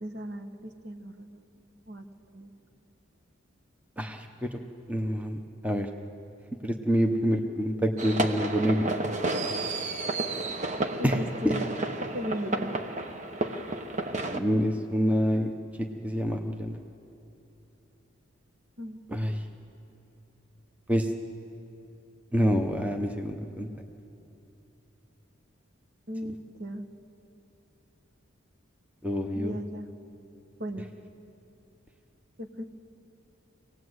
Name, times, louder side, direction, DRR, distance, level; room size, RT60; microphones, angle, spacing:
voice 1, 0.0-1.5 1.9-2.1 2.3-2.5 11.0-11.6 12.1-12.8 18.8-19.0 26.1-26.9 29.3-29.9 30.6-30.9 32.4-32.6, equal, 55° right, 5 dB, 1.3 m, -36 dB
voice 2, 4.0-4.6 4.9-5.4 5.6-5.9 6.6-8.9 11.0-11.2 11.4-11.5 14.3-15.5 15.8-16.8 19.1-19.4 20.9-21.1 22.3-23.7 29.0-29.6, equal, 5° right, 4 dB, 0.9 m, -27 dB
sound 1, 8.0-14.4, right 2 dB, 35° right, 1.0 m, -31 dB
26.0 x 18.5 x 8.0 m, 2.8 s
head